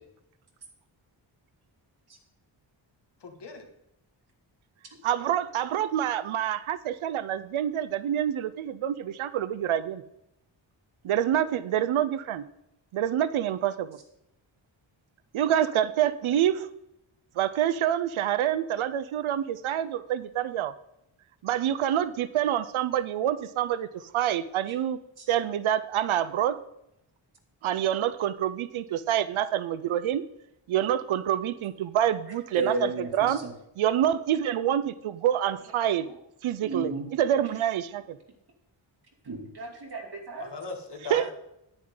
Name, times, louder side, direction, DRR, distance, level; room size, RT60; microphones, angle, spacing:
voice 1, 3.2-3.6 40.4-41.3, left 3 dB, 60° left, 3 dB, 2.1 m, -38 dB
voice 2, 5.0-10.0 11.0-12.4 12.9-13.9 15.3-16.7 17.4-20.7 21.4-23.9 24.1-25.0 25.3-26.6 27.6-30.2 30.7-33.4 33.8-36.1 36.4-38.0 41.1-41.2, right 11 dB, 85° right, 15 dB, 0.6 m, -27 dB
voice 3, 32.5-33.5 36.6-37.0 39.2-40.5, right 2 dB, 55° right, 2 dB, 2.7 m, -33 dB
10.5 x 10.0 x 3.8 m, 0.82 s
cardioid pair, 80°, 47 cm